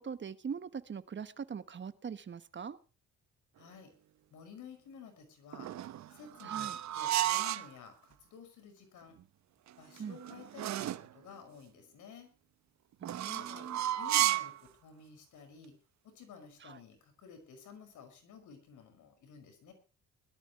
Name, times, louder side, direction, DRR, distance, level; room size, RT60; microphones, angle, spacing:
voice 1, 0.0-2.8 6.4-6.8 10.0-10.2 13.0-13.8 16.6-16.8, right 6 dB, 40° right, 13 dB, 1.3 m, -42 dB
voice 2, 3.6-3.9 4.3-5.7 6.1-6.7 6.9-9.2 9.8-12.3 13.2-13.7 14.0-15.7 16.1-19.7, left 6 dB, 80° left, 6 dB, 5.8 m, -53 dB
sound 1, 5.5-7.7 9.7-11.1 13.0-14.6, right 14 dB, 65° right, 0.9 m, -33 dB
21.5 x 13.0 x 3.1 m, 0.31 s
cardioid pair, 90°, 30 cm